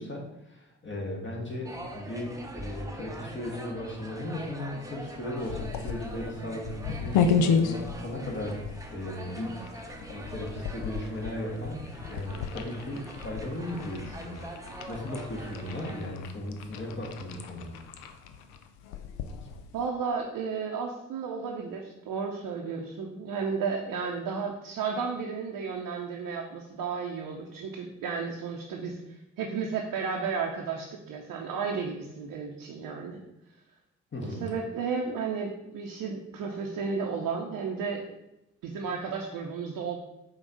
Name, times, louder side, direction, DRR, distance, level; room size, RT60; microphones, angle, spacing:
voice 1, 0.0-14.5 14.9-17.8 34.1-34.6, left 1 dB, 30° left, -1 dB, 1.4 m, -36 dB
sound 1, 1.6-16.1, right 1 dB, 10° right, 0.7 m, -43 dB
sound 2, 5.4-19.9, left 6 dB, 75° left, 0.5 m, -33 dB
voice 2, 19.7-29.0 29.4-33.2 34.2-38.1 38.6-40.0, right 5 dB, 60° right, -1 dB, 0.7 m, -33 dB
5.0 x 2.3 x 3.9 m, 0.91 s
hypercardioid pair, 45°, 37 cm